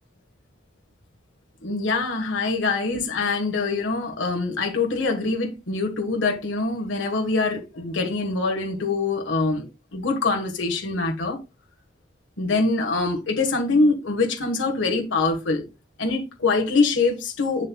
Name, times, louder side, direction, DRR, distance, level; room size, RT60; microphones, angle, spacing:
voice 1, 1.6-9.6 9.9-11.4 12.4-15.6 16.0-17.7, left 3 dB, 85° left, 1.4 m, -24 dB
7.7 x 7.5 x 2.3 m
head